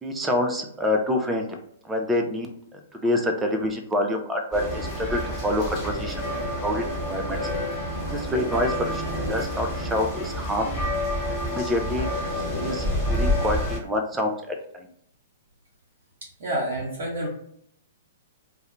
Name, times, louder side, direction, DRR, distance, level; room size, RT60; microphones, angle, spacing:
voice 1, 0.0-1.5 1.8-6.2 6.6-7.4 8.0-10.7 11.5-12.1 12.6-14.9, left 1 dB, 10° right, 3 dB, 0.4 m, -27 dB
sound 1, 4.5-13.8, left 1 dB, 10° left, 1.1 m, -28 dB
voice 2, 16.4-17.3, right 1 dB, 55° right, -5 dB, 0.8 m, -28 dB
2.3 x 2.1 x 2.9 m, 0.68 s
figure-of-eight pair, 115°, 0 cm